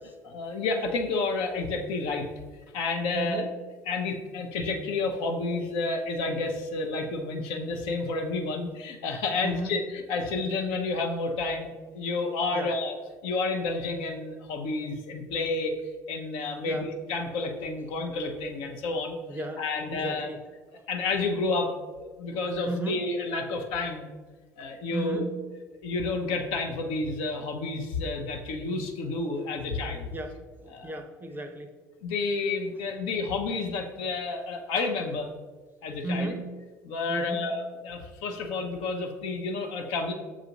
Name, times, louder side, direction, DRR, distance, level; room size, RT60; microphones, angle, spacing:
voice 1, 0.2-2.3 2.7-3.4 3.9-12.9 13.2-15.7 16.1-20.3 20.9-24.1 24.6-25.3 25.8-30.1 30.7-30.9 32.0-35.3 35.8-36.3 36.8-40.1, left 3 dB, 65° left, 3 dB, 0.6 m, -30 dB
voice 2, 3.1-3.5 9.4-9.7 12.5-12.7 16.6-16.9 19.3-20.4 22.6-23.1 24.9-25.3 30.1-31.7 36.0-36.5 37.1-37.5, right 1 dB, 20° right, 7 dB, 0.5 m, -34 dB
7.0 x 2.4 x 2.9 m, 1.3 s
hypercardioid pair, 65°, 9 cm